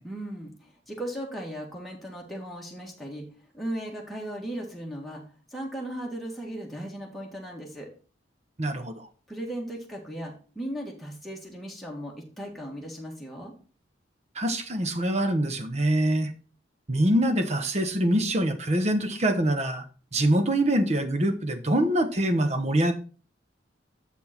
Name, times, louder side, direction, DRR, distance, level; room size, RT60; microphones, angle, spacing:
voice 1, 0.0-3.3 3.5-5.2 5.5-7.9 9.3-13.5, right 1 dB, ahead, -3 dB, 1.8 m, -37 dB
voice 2, 8.6-9.1 14.3-16.3 16.9-19.8 20.1-22.9, right 1 dB, 40° right, 8 dB, 1.0 m, -24 dB
7.3 x 6.1 x 4.4 m, 0.37 s
head